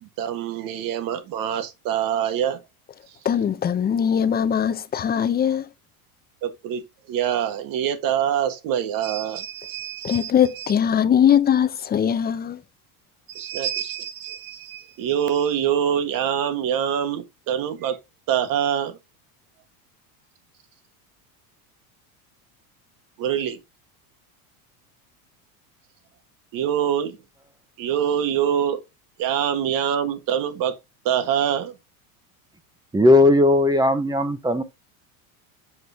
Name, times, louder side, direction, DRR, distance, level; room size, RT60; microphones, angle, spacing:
voice 1, 0.0-2.6 6.4-10.3 10.6-10.7 13.3-18.0 18.3-19.0 23.2-23.6 26.5-27.2 27.8-28.8 29.2-30.8 31.0-31.7, right 9 dB, 50° right, 1.5 m, -25 dB
voice 2, 3.2-5.7 10.0-12.6, left 8 dB, 20° left, 0.6 m, -21 dB
voice 3, 32.9-34.6, left 2 dB, 10° right, 0.9 m, -17 dB
7.9 x 3.9 x 3.5 m
supercardioid pair, 115°, 43 cm